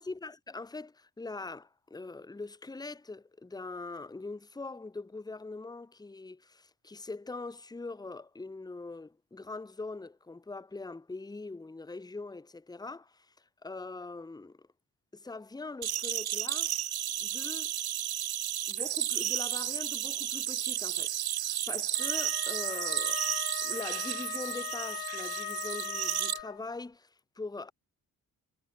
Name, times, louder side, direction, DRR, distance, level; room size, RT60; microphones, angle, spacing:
voice 1, 0.0-13.3 13.6-14.7 15.1-16.8 17.2-17.7 18.7-21.1 21.4-23.3 23.6-27.7, left 3 dB, 10° left, 0.8 m, -42 dB
sound 1, 15.8-26.4, right 12 dB, 75° right, 0.9 m, -33 dB
Wind instrument woodwind instrument, 22.0-26.6, left 12 dB, 70° left, 0.8 m, -39 dB
wide cardioid pair, 120°, 37 cm